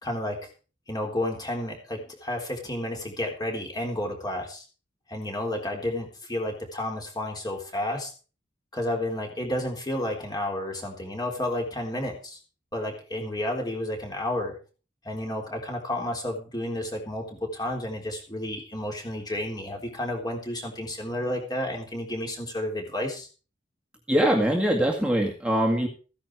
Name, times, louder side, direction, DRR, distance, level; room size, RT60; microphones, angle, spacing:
voice 1, 0.0-0.4 0.9-4.6 5.1-8.1 8.7-12.4 12.7-14.6 15.0-23.3, left 1 dB, 20° left, 1 dB, 3.8 m, -31 dB
voice 2, 24.1-25.9, equal, 5° right, -1 dB, 2.1 m, -22 dB
15.5 x 10.0 x 4.7 m, 0.36 s
head